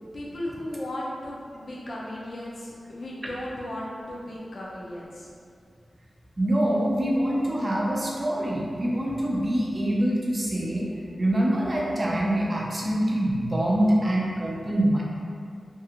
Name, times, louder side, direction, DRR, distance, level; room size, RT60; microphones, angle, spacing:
voice 1, 0.1-5.3, left 1 dB, 60° left, -5 dB, 0.6 m, -36 dB
voice 2, 6.4-10.9 11.2-15.0, right 1 dB, 30° right, -4 dB, 0.5 m, -25 dB
2.6 x 2.5 x 2.8 m, 2.3 s
wide cardioid pair, 95°, 0 cm